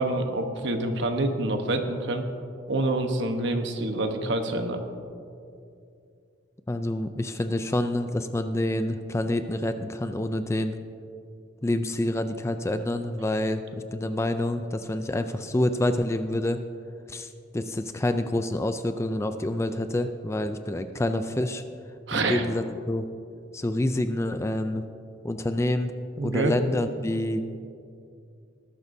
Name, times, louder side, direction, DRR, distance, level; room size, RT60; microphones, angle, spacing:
voice 1, 0.0-2.2 2.7-4.8 22.1-22.5 26.2-26.5, right 2 dB, 60° right, 5 dB, 1.1 m, -26 dB
voice 2, 6.7-10.7 11.6-13.6 13.9-16.6 17.1-21.6 22.1-23.1 23.5-24.8 25.2-25.9 26.2-27.4, left 1 dB, 15° left, 9 dB, 0.4 m, -27 dB
19.5 x 12.0 x 2.7 m, 2.5 s
head